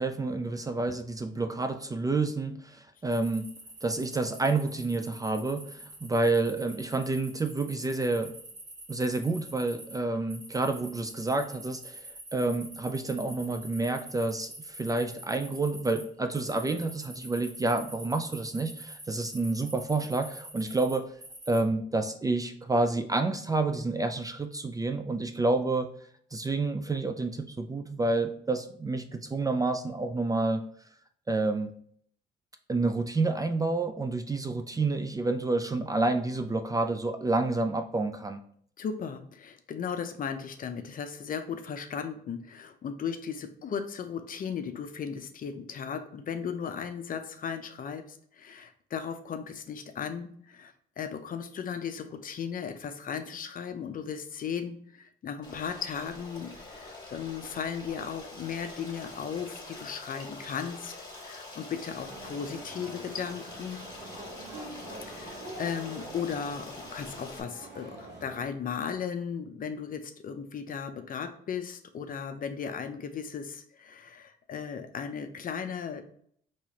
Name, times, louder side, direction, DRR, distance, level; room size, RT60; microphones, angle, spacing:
voice 1, 0.0-3.5 3.8-8.3 8.9-21.2 21.5-25.9 26.3-30.6 31.3-31.7 32.7-38.4, right 3 dB, 20° right, 7 dB, 0.3 m, -29 dB
sound 1, 3.1-10.0 10.3-16.0 16.3-21.6, right 1 dB, 40° right, 1.7 m, -46 dB
voice 2, 38.8-63.8 65.1-76.0, left 7 dB, 50° left, 8 dB, 0.5 m, -36 dB
Stream, 55.4-67.4, left 2 dB, 25° left, 1.5 m, -45 dB
sound 2, 62.0-68.4, right 2 dB, 65° right, 1.0 m, -45 dB
4.6 x 3.0 x 2.8 m, 0.62 s
cardioid pair, 90°, 19 cm